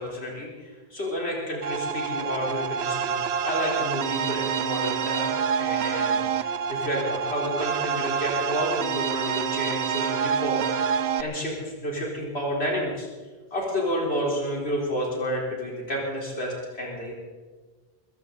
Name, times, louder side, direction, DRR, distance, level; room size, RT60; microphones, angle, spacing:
voice 1, 0.0-5.3 5.6-13.1 13.5-17.1, equal, 80° left, -3 dB, 4.3 m, -30 dB
sound 1, 1.6-11.2, right 7 dB, 80° right, 1.0 m, -27 dB
21.5 x 15.0 x 4.0 m, 1.4 s
omnidirectional pair, 1.1 m